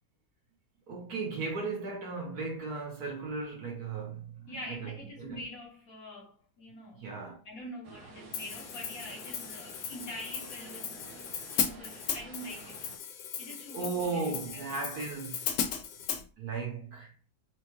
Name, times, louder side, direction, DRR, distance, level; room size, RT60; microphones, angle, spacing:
voice 1, 0.9-5.4 7.0-7.4 13.7-15.7 16.4-17.1, right 4 dB, 55° right, 1.3 m, -36 dB
voice 2, 4.5-7.0 7.4-11.0 11.5-12.8 13.4-14.6, left 1 dB, 55° left, 1.2 m, -45 dB
sound 1, 7.8-13.0, right 4 dB, 80° right, 1.5 m, -51 dB
Hi-hat, 8.3-16.2, left 8 dB, 75° left, 1.1 m, -36 dB
4.5 x 2.3 x 3.0 m
omnidirectional pair, 2.1 m